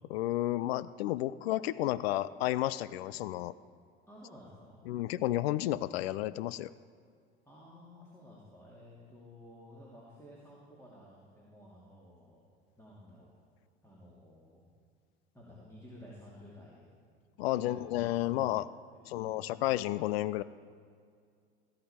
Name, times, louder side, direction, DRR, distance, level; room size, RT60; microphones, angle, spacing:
voice 1, 0.1-3.5 4.9-6.7 17.4-18.7 19.1-20.4, left 15 dB, 70° left, 18 dB, 0.4 m, -32 dB
voice 2, 4.1-4.8 7.4-12.4 12.8-13.3 13.8-14.6 15.3-16.9 17.4-18.6 18.9-19.7, left 1 dB, 10° left, -6 dB, 2.6 m, -53 dB
17.0 x 8.9 x 4.4 m, 2.2 s
hypercardioid pair, 70°, 32 cm